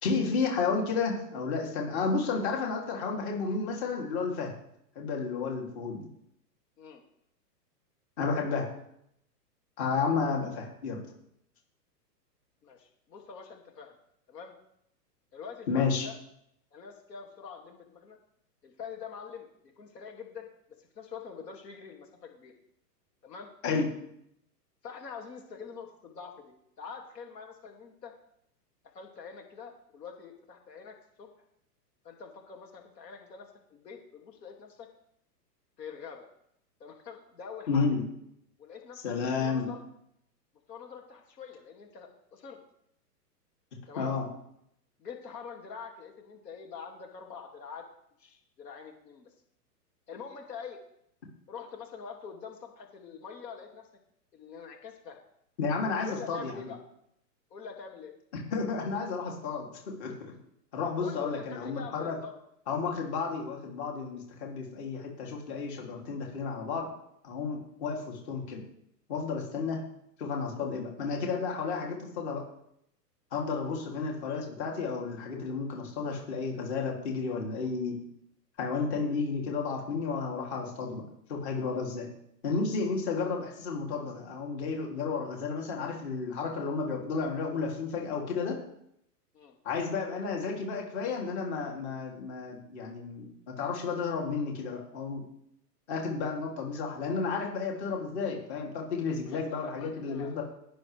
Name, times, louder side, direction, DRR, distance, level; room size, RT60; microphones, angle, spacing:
voice 1, 0.0-4.5 4.9-6.1 8.2-8.7 9.8-11.0 15.7-16.1 23.6-23.9 37.7-38.0 39.0-39.7 44.0-44.2 55.6-56.7 58.3-59.7 60.0-60.3 60.7-62.1 62.7-66.9 67.2-68.6 69.1-69.8 70.2-72.4 73.3-77.9 78.6-81.0 81.3-82.1 82.4-88.6 89.6-95.2 95.9-100.4, left 4 dB, 40° left, 0 dB, 2.8 m, -32 dB
voice 2, 12.6-13.9 14.3-14.5 15.3-16.1 16.7-18.2 18.6-19.5 19.8-20.5 20.8-22.5 23.2-23.5 24.8-28.1 28.9-31.3 32.0-34.9 35.8-36.3 36.8-37.9 38.6-39.8 40.7-42.6 43.9-44.2 45.0-47.8 48.2-49.3 50.1-50.8 51.5-53.9 54.3-55.2 56.0-56.8 57.5-58.1 61.0-62.3 73.6-73.8 89.3-89.6 99.3-100.4, left 6 dB, 80° left, 2 dB, 2.4 m, -45 dB
19.5 x 7.0 x 3.3 m, 0.75 s
hypercardioid pair, 160°, 49 cm